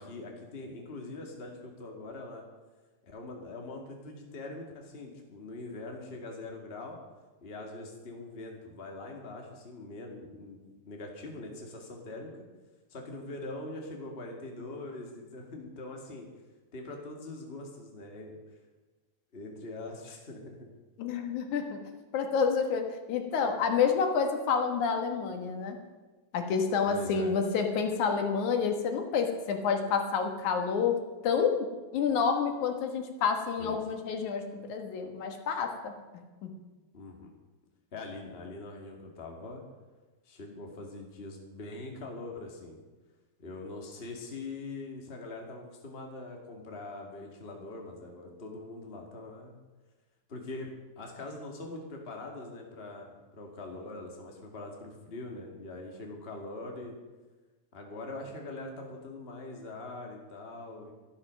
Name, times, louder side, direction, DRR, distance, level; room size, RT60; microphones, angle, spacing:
voice 1, 0.0-2.4 3.0-7.0 7.4-10.6 10.8-12.4 12.9-16.3 16.7-18.3 19.3-20.7 26.9-27.3 33.6-34.0 36.9-37.3 37.9-39.6 40.2-42.8 43.4-49.6 50.3-57.0 57.7-60.9, left 2 dB, 25° left, 1 dB, 1.9 m, -43 dB
voice 2, 21.0-21.8 22.1-25.8 26.3-31.0 31.2-31.6 31.9-36.5, left 6 dB, 80° left, 5 dB, 2.8 m, -29 dB
13.0 x 11.5 x 6.3 m, 1.2 s
omnidirectional pair, 3.4 m